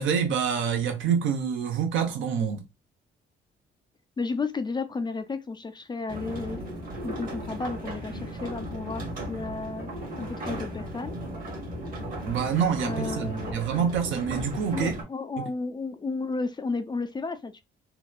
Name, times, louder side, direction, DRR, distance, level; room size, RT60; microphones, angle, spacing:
voice 1, 0.0-2.6 12.2-14.9 15.4-15.5, right 7 dB, 75° right, 0.7 m, -27 dB
voice 2, 4.2-6.6 7.0-11.2 12.8-13.6 14.7-17.6, left 4 dB, 25° left, 0.3 m, -33 dB
sound 1, 6.1-15.0, right 1 dB, 45° right, 1.1 m, -36 dB
2.9 x 2.0 x 2.2 m
cardioid pair, 90°, 20 cm